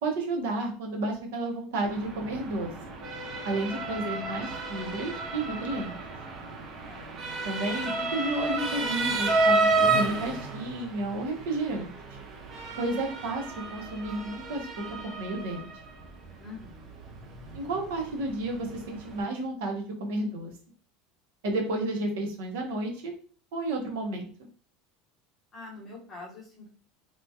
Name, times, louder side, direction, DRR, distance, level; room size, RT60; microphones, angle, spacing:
voice 1, 0.0-2.7 3.4-6.0 7.4-9.7 9.9-11.9 12.8-13.5 13.7-14.7 15.0-15.7 17.5-20.5 21.4-23.1 23.5-24.3, right 2 dB, 75° right, 2 dB, 0.9 m, -31 dB
Motor vehicle (road) / Siren, 1.8-19.2, right 3 dB, 25° right, 0.5 m, -32 dB
voice 2, 6.8-7.4 16.4-16.9 25.5-26.7, left 3 dB, 15° left, -5 dB, 0.9 m, -45 dB
3.0 x 2.3 x 2.7 m, 0.41 s
cardioid pair, 180°, 0 cm